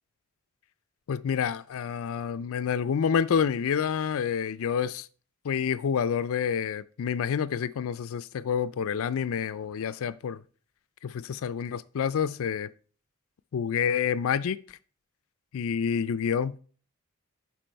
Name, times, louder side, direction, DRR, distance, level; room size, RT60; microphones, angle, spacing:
voice 1, 1.1-5.1 5.4-10.4 11.0-12.7 13.5-14.8 15.5-16.6, left 7 dB, 65° left, 0.4 m, -28 dB
11.5 x 4.7 x 4.5 m
head